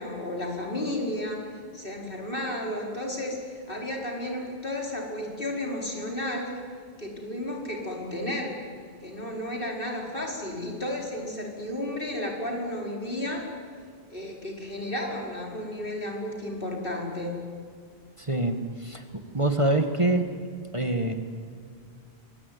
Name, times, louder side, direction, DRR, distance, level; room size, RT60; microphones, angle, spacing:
voice 1, 0.0-6.5 7.0-8.6 9.0-13.4 14.1-17.4, left 1 dB, 55° left, 0 dB, 5.3 m, -33 dB
voice 2, 18.2-19.0 19.3-20.2 20.7-21.1, right 2 dB, 30° right, 6 dB, 1.8 m, -25 dB
26.0 x 23.0 x 9.5 m, 2.1 s
omnidirectional pair, 1.1 m